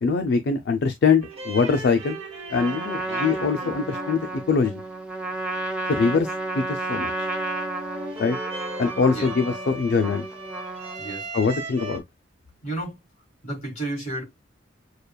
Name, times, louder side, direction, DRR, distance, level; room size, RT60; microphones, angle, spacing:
voice 1, 0.0-2.2 2.5-4.8 5.9-6.3 6.5-7.1 8.2-8.4 8.8-10.3 11.3-12.0, left 5 dB, 55° left, 0.4 m, -23 dB
sound 1, 1.2-12.0, right 2 dB, 30° right, 1.2 m, -39 dB
Trumpet, 2.5-11.2, right 2 dB, 5° right, 0.6 m, -32 dB
voice 2, 12.6-13.0 13.4-14.2, right 2 dB, 35° left, 2.0 m, -31 dB
6.5 x 2.3 x 2.2 m
head